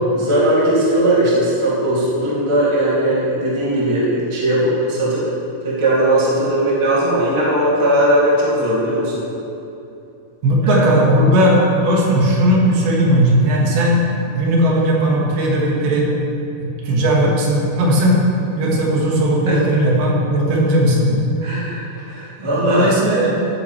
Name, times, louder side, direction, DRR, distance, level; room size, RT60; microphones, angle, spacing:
voice 1, 0.1-5.2 5.6-9.2 10.7-10.8 19.5-19.6 21.4-22.9, right 1 dB, 20° right, -7 dB, 0.7 m, -18 dB
voice 2, 10.4-14.0 14.3-16.1 16.6-18.2 18.6-21.2 22.4-23.3, equal, 70° right, -3 dB, 3.2 m, -16 dB
15.0 x 8.7 x 3.2 m, 2.7 s
omnidirectional pair, 4.9 m